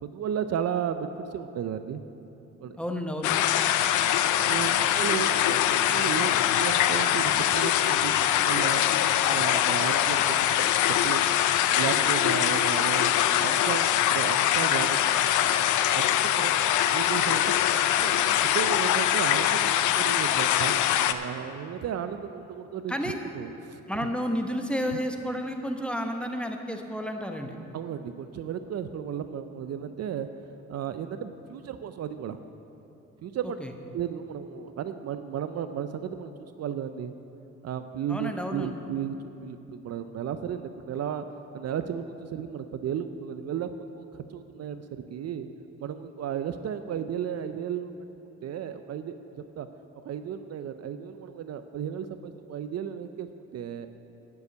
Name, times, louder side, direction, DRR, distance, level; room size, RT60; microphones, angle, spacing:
voice 1, 0.0-2.0 2.6-2.8 4.5-11.4 11.8-15.3 15.9-22.9 23.3-23.8 24.9-25.0 27.7-30.3 30.7-32.4 33.2-33.6 33.9-37.1 37.6-39.1 39.4-41.2 41.5-44.1 44.3-45.5 45.8-47.9 48.4-49.7 50.1-53.3 53.5-53.9, right 8 dB, 55° right, 10 dB, 0.5 m, -34 dB
voice 2, 2.8-3.3 22.9-23.2 23.9-27.5 33.6-33.7 38.1-38.7, equal, 5° left, 4 dB, 1.0 m, -31 dB
sound 1, 3.2-21.1, left 11 dB, 80° left, 0.5 m, -23 dB
9.6 x 7.0 x 8.1 m, 2.9 s
cardioid pair, 90°, 30 cm